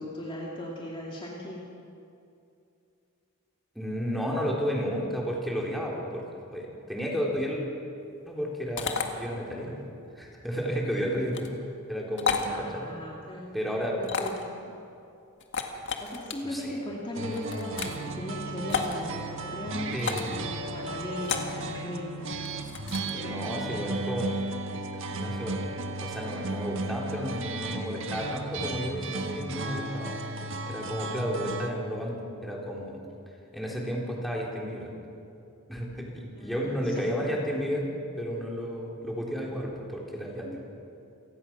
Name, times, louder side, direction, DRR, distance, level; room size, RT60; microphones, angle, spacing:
voice 1, 0.0-1.7 12.4-13.5 13.9-14.8 16.0-22.3 23.1-23.8 36.4-37.3 40.4-40.6, left 1 dB, 25° left, -4 dB, 2.7 m, -38 dB
voice 2, 3.7-6.2 6.5-7.6 8.3-9.8 10.1-11.5 11.9-12.9 13.5-13.9 16.4-16.8 19.9-20.3 23.1-24.3 25.1-25.7 26.0-30.2 30.7-33.0 33.5-34.9 35.7-37.9 38.2-40.6, equal, ahead, -3 dB, 3.9 m, -32 dB
sound 1, 8.8-9.1 11.3-11.5 12.2-12.5 14.0-14.5 15.4-16.3 17.3-18.0 18.7-18.9 20.0-20.3 21.2-21.6 22.4-23.1, left 6 dB, 55° left, 1.9 m, -31 dB
sound 2, 17.1-31.7, right 2 dB, 60° right, 1.6 m, -35 dB
29.0 x 18.0 x 6.2 m, 2.6 s
head